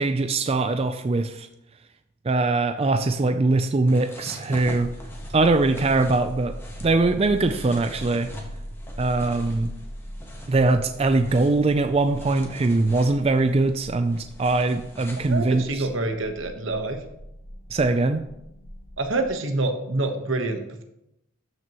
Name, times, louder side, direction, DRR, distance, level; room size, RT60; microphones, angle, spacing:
voice 1, 0.0-1.5 2.2-4.9 5.3-6.5 6.8-8.3 9.0-9.7 10.5-15.9 17.7-18.2, right 3 dB, 30° right, 8 dB, 0.4 m, -22 dB
sound 1, 3.9-15.7, equal, 10° left, 1.1 m, -43 dB
sound 2, 4.6-19.3, equal, 65° left, 1.3 m, -41 dB
voice 2, 15.3-17.0 19.0-20.8, right 2 dB, 60° right, 6 dB, 1.1 m, -27 dB
12.5 x 6.1 x 3.0 m, 0.82 s
head